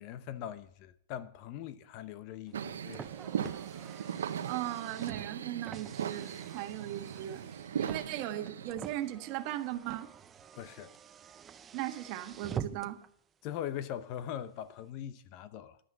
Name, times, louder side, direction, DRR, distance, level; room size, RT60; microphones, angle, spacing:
voice 1, 0.0-3.2 10.5-10.9 13.4-15.8, left 10 dB, 45° left, 0.8 m, -41 dB
Car, 2.5-13.1, right 8 dB, 20° right, 0.5 m, -47 dB
sound 1, 2.5-8.7, right 8 dB, 80° right, 0.9 m, -38 dB
voice 2, 4.4-7.4 7.8-10.1 11.7-13.0, right 13 dB, 45° right, 1.4 m, -38 dB
11.0 x 9.3 x 6.8 m
hypercardioid pair, 130°, 0 cm